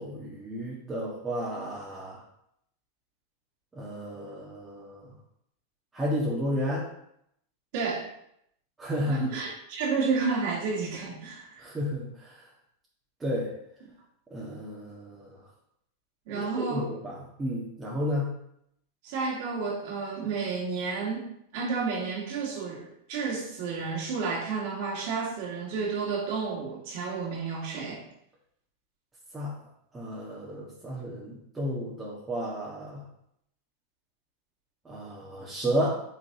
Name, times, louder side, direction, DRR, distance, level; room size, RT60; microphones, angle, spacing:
voice 1, 0.0-2.2 3.7-5.1 5.9-6.9 8.8-9.3 11.6-12.4 13.2-13.5 14.3-15.4 16.3-18.3 29.3-29.5 29.9-33.1 34.8-36.0, equal, 15° right, -6 dB, 1.5 m, -32 dB
voice 2, 7.7-8.0 9.1-11.7 16.3-16.9 19.0-21.3 21.5-28.0, right 4 dB, 60° right, -2 dB, 2.2 m, -31 dB
8.7 x 3.9 x 2.9 m, 0.75 s
hypercardioid pair, 105°, 0 cm